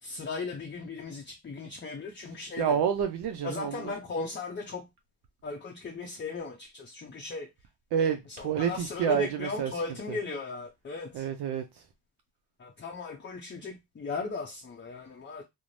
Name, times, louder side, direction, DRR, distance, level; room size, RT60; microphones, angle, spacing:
voice 1, 0.0-2.8 3.4-4.9 5.4-7.5 8.3-11.3 12.6-15.4, left 4 dB, 25° left, 0.5 m, -37 dB
voice 2, 2.6-3.9 7.9-9.7 10.1-10.2 11.1-11.6, right 8 dB, 70° right, 0.5 m, -28 dB
2.5 x 2.0 x 3.1 m
cardioid pair, 60°, 41 cm